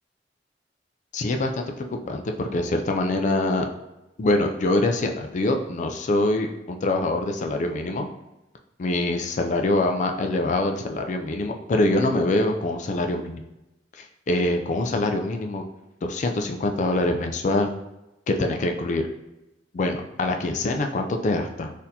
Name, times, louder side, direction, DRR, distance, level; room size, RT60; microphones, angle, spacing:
voice 1, 1.1-1.6 1.9-3.7 4.2-8.1 8.8-13.5 14.0-15.6 16.0-17.7 18.3-19.0 19.7-21.7, left 2 dB, 45° left, 5 dB, 0.4 m, -24 dB
4.1 x 2.6 x 2.7 m, 0.96 s
head